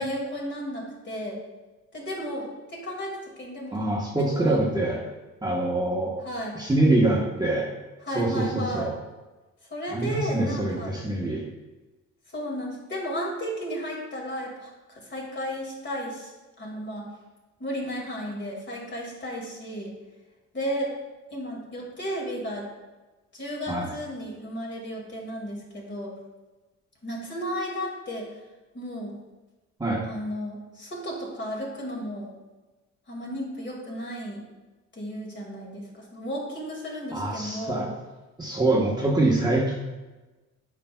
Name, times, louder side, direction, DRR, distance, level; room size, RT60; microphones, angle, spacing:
voice 1, 0.0-1.4 1.9-3.8 4.4-4.6 6.2-6.6 8.0-8.9 9.7-10.9 12.3-16.3 16.6-17.1 17.6-19.9 20.5-20.9 21.3-22.7 23.3-26.1 27.0-28.3 28.7-29.2 30.1-32.3 33.1-34.4 34.9-37.9, equal, 35° left, -2 dB, 2.2 m, -33 dB
voice 2, 3.7-5.0 5.4-6.2 6.5-7.7 8.1-8.9 9.9-11.4 23.7-23.9 29.8-30.0 37.1-37.9 38.4-39.8, right 2 dB, 15° right, -3 dB, 1.2 m, -24 dB
8.8 x 5.1 x 2.3 m, 1.1 s
cardioid pair, 90°, 30 cm